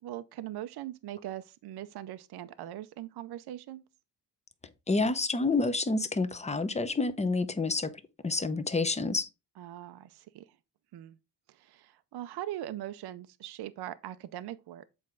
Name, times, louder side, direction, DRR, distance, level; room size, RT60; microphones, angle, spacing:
voice 1, 0.0-3.8 9.6-10.6 10.9-11.2 11.5-14.8, right 13 dB, 65° right, 0.6 m, -41 dB
voice 2, 4.9-7.9 8.2-9.3, left 3 dB, 15° left, 0.7 m, -28 dB
7.7 x 4.4 x 3.7 m
cardioid pair, 110°, 42 cm